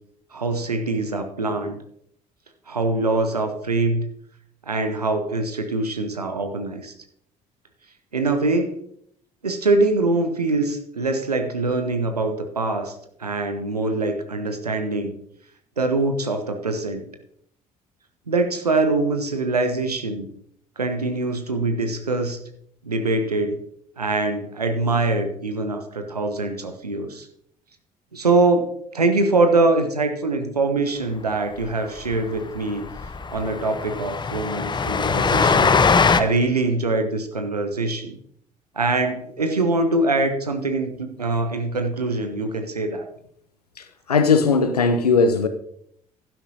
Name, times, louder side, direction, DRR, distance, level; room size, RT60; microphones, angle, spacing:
voice 1, 0.3-1.8 2.7-4.1 4.7-6.9 8.1-8.7 9.4-12.9 13.2-15.1 15.8-17.0 18.3-20.3 20.8-22.4 22.8-23.6 24.0-27.3 28.1-32.9 33.3-35.7 36.1-38.2 38.8-43.1, right 2 dB, 85° right, 0.7 m, -23 dB
Train, 31.6-31.7 32.0-32.1 32.4-32.5 32.8-36.2, left 5 dB, 25° left, 0.7 m, -21 dB
voice 2, 43.8-45.5, left 4 dB, 85° left, 0.6 m, -19 dB
12.0 x 10.5 x 2.7 m
figure-of-eight pair, 50°, 19 cm